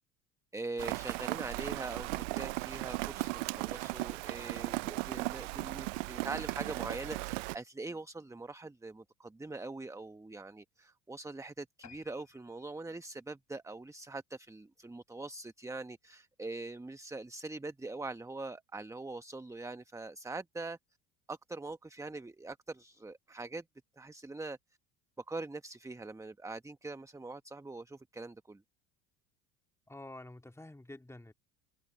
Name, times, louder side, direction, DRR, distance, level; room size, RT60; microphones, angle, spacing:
voice 1, 0.5-20.8 21.3-23.6 24.0-24.6 25.3-28.6, right 3 dB, 10° right, 1.0 m, -43 dB
Rain, 0.8-7.5, right 26 dB, 75° right, 0.6 m, -37 dB
sound 1, 11.8-14.6 15.1-15.3 15.7-15.8 16.1-16.2 16.4-16.5, left 11 dB, 45° left, 5.1 m, -60 dB
voice 2, 29.9-31.3, left 1 dB, 5° left, 2.2 m, -48 dB
hypercardioid pair, 75°, 38 cm